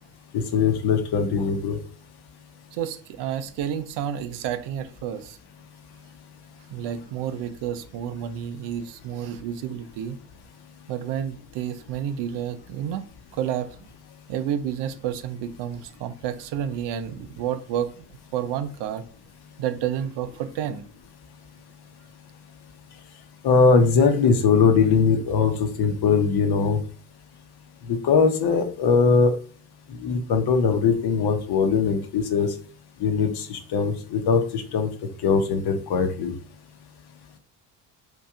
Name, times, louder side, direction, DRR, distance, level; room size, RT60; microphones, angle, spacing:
voice 1, 0.3-1.8 23.4-26.8 28.0-29.3 30.0-32.5 33.0-34.9 35.2-36.3, left 5 dB, 55° left, 1.0 m, -21 dB
voice 2, 2.7-5.4 6.7-10.2 10.9-13.0 13.3-13.8 14.3-17.9 18.3-19.1 19.6-20.8, right 9 dB, 60° right, 0.6 m, -30 dB
3.1 x 2.7 x 3.6 m
hypercardioid pair, 60°, 48 cm